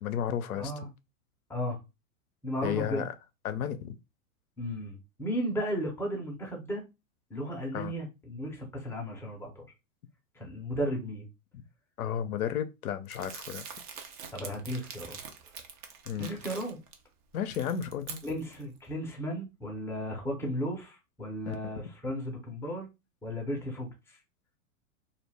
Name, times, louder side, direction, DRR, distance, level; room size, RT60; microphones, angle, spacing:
voice 1, 0.0-0.7 2.6-3.1 3.4-4.0 7.7-7.9 11.5-11.6 12.0-13.6 16.1-16.3 17.3-18.2 21.5-21.8, left 9 dB, 80° left, 0.6 m, -33 dB
voice 2, 0.5-0.9 1.5-1.8 2.4-3.0 4.6-6.8 7.3-9.7 10.4-11.3 14.3-15.2 16.2-16.8 18.2-22.9 23.2-23.9, equal, 5° left, 0.6 m, -35 dB
Crumpling crinkling, 13.1-16.9 17.4-18.6, right 6 dB, 35° right, 0.5 m, -45 dB
2.4 x 2.1 x 3.3 m
hypercardioid pair, 115°, 43 cm